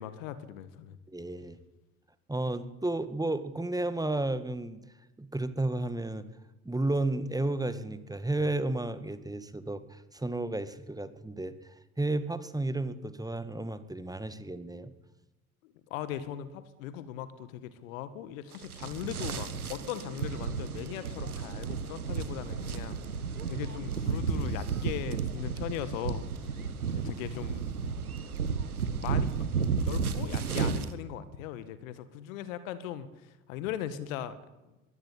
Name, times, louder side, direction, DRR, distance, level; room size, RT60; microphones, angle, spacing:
voice 1, 0.0-1.0 15.6-23.0 23.5-26.6 26.9-27.7 29.0-29.5 29.9-34.3, left 11 dB, 65° left, 14 dB, 2.0 m, -39 dB
voice 2, 1.1-1.6 2.3-4.8 5.2-6.3 6.7-14.9 26.6-26.8, right 2 dB, 10° right, 13 dB, 2.0 m, -32 dB
sound 1, 18.5-30.9, right 5 dB, 85° right, 1.6 m, -33 dB
23.0 x 17.5 x 8.9 m, 1.1 s
figure-of-eight pair, 60°, 43 cm